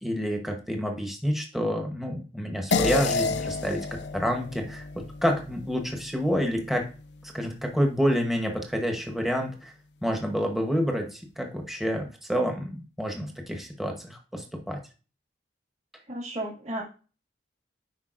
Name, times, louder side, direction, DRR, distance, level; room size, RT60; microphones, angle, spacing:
voice 1, 0.0-3.9 4.1-4.8 5.2-6.8 7.2-9.7 10.0-14.8, equal, ahead, 2 dB, 0.9 m, -28 dB
sound 1, 2.7-7.4, left 4 dB, 75° left, 0.5 m, -31 dB
voice 2, 16.1-16.8, right 1 dB, 40° right, -1 dB, 1.9 m, -33 dB
10.0 x 4.6 x 2.5 m, 0.35 s
head